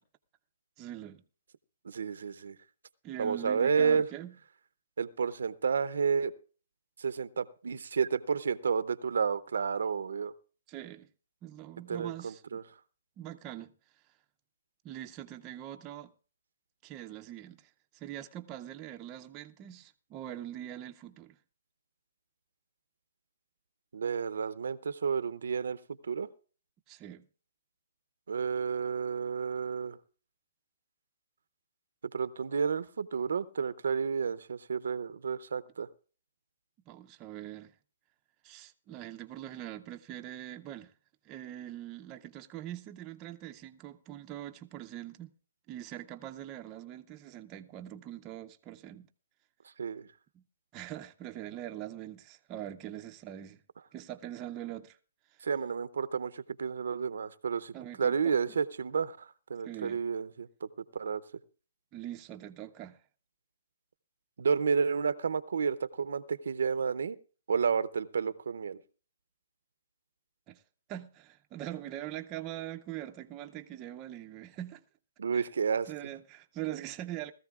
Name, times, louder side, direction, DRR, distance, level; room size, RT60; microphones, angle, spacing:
voice 1, 0.8-1.2 3.0-4.3 10.7-11.1 11.4-12.6 13.2-13.7 14.8-16.1 16.8-21.4 26.9-27.3 36.9-37.7 38.4-40.9 41.2-45.3 45.7-49.1 50.3-50.4 50.7-53.6 53.9-55.0 55.3-55.5 57.7-58.2 59.6-60.0 61.9-63.0 70.5-70.6 70.9-74.8 75.3-75.5 75.9-77.3, right 12 dB, 20° right, 0.6 m, -43 dB
voice 2, 1.8-2.6 3.2-4.1 5.0-6.3 7.0-10.3 11.9-12.6 23.9-25.8 26.0-26.3 28.3-30.0 32.1-35.9 49.8-50.1 55.4-57.7 58.0-61.2 64.4-67.2 67.5-68.8 75.2-75.9, right 6 dB, 80° right, 0.7 m, -31 dB
19.5 x 14.0 x 2.4 m
hypercardioid pair, 160°, 0 cm